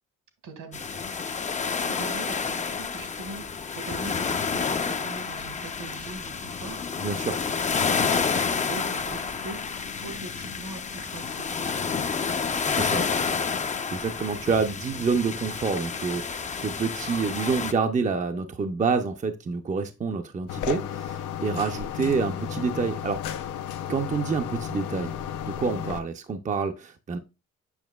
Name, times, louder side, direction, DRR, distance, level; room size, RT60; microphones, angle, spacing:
voice 1, 0.4-0.8 1.8-6.9 8.7-9.6 9.9-11.5, right 3 dB, 70° right, 1.8 m, -41 dB
sound 1, 0.7-17.7, left 5 dB, 25° left, 0.5 m, -29 dB
voice 2, 7.0-7.4 12.7-13.1 13.9-23.2 23.9-25.1 25.6-27.2, right 5 dB, 25° right, 0.6 m, -27 dB
sound 2, 20.5-26.0, left 9 dB, 80° left, 0.7 m, -33 dB
7.1 x 5.8 x 2.3 m
cardioid pair, 90°, 30 cm